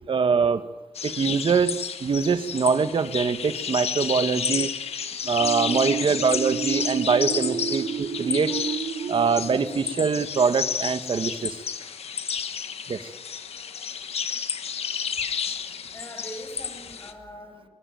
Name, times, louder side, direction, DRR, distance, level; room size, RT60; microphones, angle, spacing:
voice 1, 0.1-0.6 1.0-4.7 5.2-8.6 9.1-11.5 12.9-13.0, right 5 dB, 60° right, 10 dB, 1.6 m, -23 dB
sound 1, 0.9-17.1, left 7 dB, 90° left, 1.4 m, -31 dB
sound 2, 5.4-11.1, right 8 dB, 80° right, 0.8 m, -32 dB
voice 2, 15.6-17.7, equal, 25° left, 3 dB, 6.5 m, -42 dB
22.0 x 20.0 x 9.3 m, 1.0 s
wide cardioid pair, 115°, 10 cm